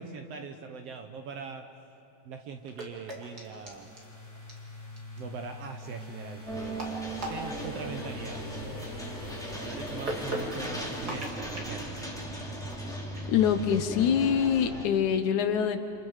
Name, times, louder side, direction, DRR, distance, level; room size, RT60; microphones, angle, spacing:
voice 1, 0.0-1.7 2.2-3.9 5.2-7.0 7.3-9.0 9.6-12.1, right 5 dB, 65° right, 5 dB, 1.7 m, -41 dB
sound 1, 2.5-13.2, right 1 dB, 30° right, 2.8 m, -43 dB
sound 2, 3.7-12.0, left 2 dB, 25° left, 3.6 m, -45 dB
sound 3, 6.4-14.8, right 1 dB, ahead, 2.4 m, -37 dB
voice 2, 13.3-15.8, left 8 dB, 75° left, 9 dB, 2.3 m, -25 dB
29.0 x 27.5 x 5.0 m, 2.9 s
omnidirectional pair, 3.6 m